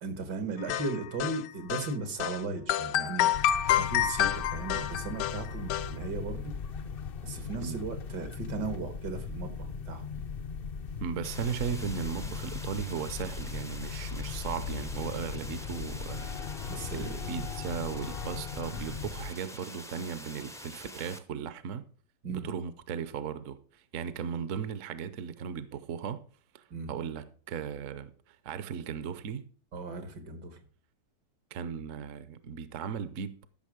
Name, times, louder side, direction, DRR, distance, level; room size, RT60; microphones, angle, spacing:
voice 1, 0.0-3.3 3.6-6.5 7.2-10.2 16.7-17.2 22.2-22.5 26.7-26.9 29.7-30.6, right 3 dB, 80° right, 2.2 m, -37 dB
sound 1, 0.7-1.9 2.2-2.4 2.7-5.9, left 11 dB, 80° left, 1.2 m, -28 dB
sound 2, 3.3-19.3, left 6 dB, 60° left, 0.6 m, -38 dB
voice 2, 11.0-16.3 16.6-21.9 22.3-26.2 26.5-29.5 31.5-33.5, right 7 dB, 60° right, 1.0 m, -37 dB
sound 3, 11.2-21.2, equal, 5° left, 0.3 m, -46 dB
13.5 x 6.2 x 5.0 m
omnidirectional pair, 1.8 m